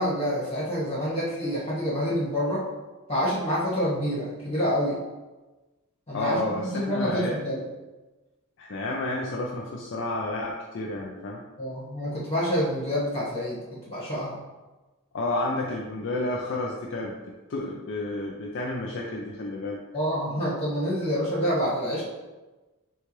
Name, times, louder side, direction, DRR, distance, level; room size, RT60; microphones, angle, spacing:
voice 1, 0.0-2.6 3.1-5.0 6.1-7.6 11.6-14.4 19.9-22.0, equal, 30° left, -7 dB, 1.5 m, -27 dB
voice 2, 6.1-7.4 8.6-11.4 15.1-17.2 17.5-19.8, left 2 dB, 55° left, -1 dB, 0.4 m, -30 dB
6.5 x 2.4 x 3.1 m, 1.2 s
head